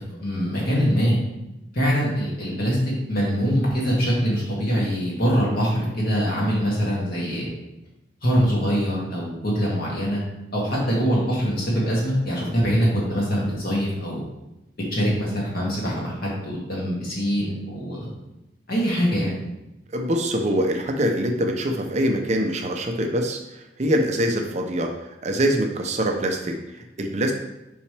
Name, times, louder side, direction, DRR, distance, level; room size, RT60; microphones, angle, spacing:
voice 1, 0.2-1.2 1.7-2.8 3.1-7.5 8.2-10.2 10.5-14.2 14.9-18.1 18.7-19.4, equal, 50° left, -5 dB, 2.1 m, -23 dB
voice 2, 19.9-27.3, equal, 35° right, 3 dB, 0.6 m, -24 dB
5.7 x 5.5 x 3.3 m, 0.96 s
head